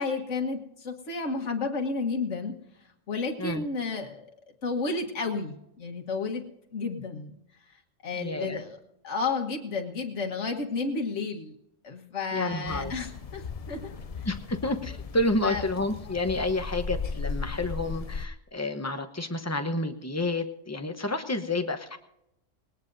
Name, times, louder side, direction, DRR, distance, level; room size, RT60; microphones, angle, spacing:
voice 1, 0.0-2.5 3.1-4.3 4.6-6.4 6.7-7.4 8.0-8.8 9.0-11.5 11.8-13.9 15.4-15.6, left 4 dB, 70° left, 2 dB, 1.8 m, -31 dB
voice 2, 8.1-8.6 12.3-12.9 14.2-22.0, left 2 dB, 15° left, 7 dB, 0.9 m, -30 dB
sound 1, 12.7-18.3, left 5 dB, 45° left, 0.5 m, -36 dB
19.0 x 18.5 x 2.7 m, 0.84 s
omnidirectional pair, 1.3 m